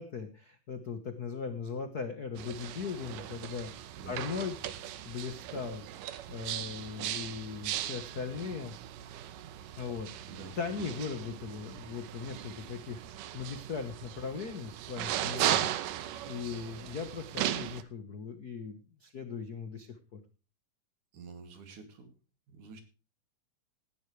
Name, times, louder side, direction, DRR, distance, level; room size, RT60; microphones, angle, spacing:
voice 1, 0.0-4.6 5.0-5.8 6.3-8.8 9.8-10.3 10.6-15.7 16.0-20.2, left 5 dB, 75° left, 8 dB, 0.8 m, -39 dB
sound 1, 2.4-17.8, right 12 dB, 85° right, 2.6 m, -37 dB
voice 2, 3.9-4.5 10.2-11.0 21.1-22.1 22.5-22.8, right 4 dB, 70° right, 7 dB, 3.8 m, -49 dB
18.0 x 12.0 x 3.3 m, 0.34 s
omnidirectional pair, 3.7 m